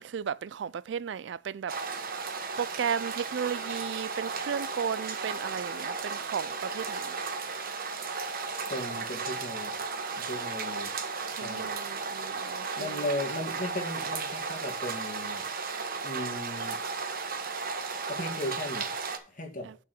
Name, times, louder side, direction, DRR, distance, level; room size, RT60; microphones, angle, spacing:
voice 1, 0.0-1.7 2.6-7.2 11.4-13.0 19.6-19.8, right 7 dB, 75° right, 0.4 m, -34 dB
sound 1, 1.7-19.2, right 4 dB, 55° right, 1.1 m, -35 dB
voice 2, 8.7-9.7 10.2-10.9 11.4-11.7 12.8-15.4 16.0-16.8 18.1-18.9 19.3-19.7, left 1 dB, 45° left, 2.0 m, -36 dB
6.2 x 5.6 x 6.8 m
head